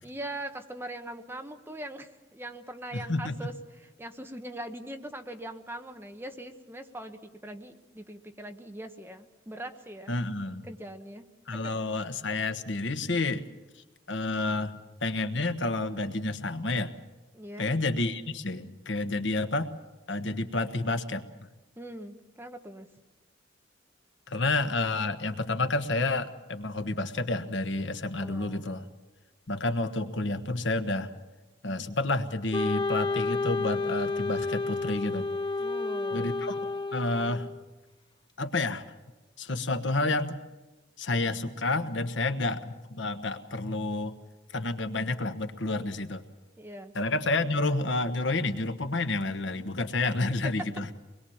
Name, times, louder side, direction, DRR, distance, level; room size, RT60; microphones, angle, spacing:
voice 1, 0.0-3.5 3.8-10.1 10.6-11.2 11.5-11.7 17.3-17.7 21.8-22.9 28.2-28.6 35.6-36.3 46.6-46.9, right 1 dB, 10° right, 6 dB, 1.1 m, -41 dB
voice 2, 2.9-3.5 10.1-10.7 11.5-13.4 13.8-16.9 17.6-19.7 20.1-21.2 24.3-28.9 29.5-31.1 31.6-35.3 36.1-36.5 36.9-37.5 38.4-38.8 39.4-40.4 41.0-44.1 44.5-46.2 46.9-50.9, left 2 dB, 80° left, 9 dB, 1.3 m, -30 dB
Wind instrument woodwind instrument, 32.5-37.6, left 3 dB, 25° left, 0.7 m, -31 dB
24.5 x 21.0 x 7.2 m, 1.2 s
head